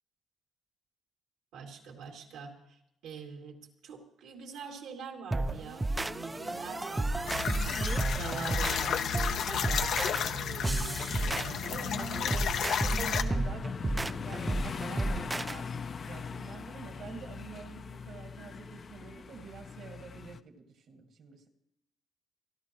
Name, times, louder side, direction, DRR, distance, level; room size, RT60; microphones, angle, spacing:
voice 1, 1.5-7.6 8.1-12.0, right 6 dB, 90° right, 1 dB, 2.5 m, -44 dB
sound 1, 5.3-15.6, right 2 dB, 15° right, 0.5 m, -32 dB
sound 2, 6.0-20.4, left 6 dB, 45° left, 0.6 m, -42 dB
sound 3, 7.3-13.2, left 8 dB, 75° left, 0.9 m, -32 dB
voice 2, 11.2-12.4 12.9-21.5, right 6 dB, 70° right, 4 dB, 2.1 m, -46 dB
28.5 x 11.5 x 3.1 m, 0.81 s
cardioid pair, 90°, 0 cm